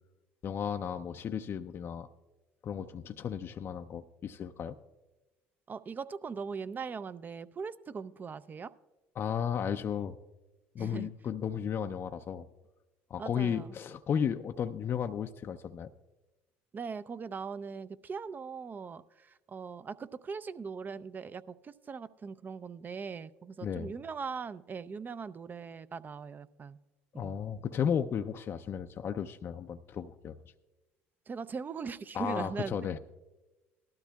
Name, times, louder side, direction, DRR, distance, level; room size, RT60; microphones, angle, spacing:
voice 1, 0.4-2.1 2.6-4.8 9.2-10.2 10.7-12.5 13.1-15.9 23.6-23.9 27.2-30.3 32.1-33.0, left 8 dB, 45° left, 7 dB, 0.4 m, -34 dB
voice 2, 5.7-8.7 10.8-11.1 13.2-13.8 16.7-26.8 27.1-27.4 31.3-32.9, right 5 dB, 30° right, 15 dB, 0.5 m, -40 dB
18.5 x 12.5 x 2.3 m, 1.1 s
hypercardioid pair, 70°, 6 cm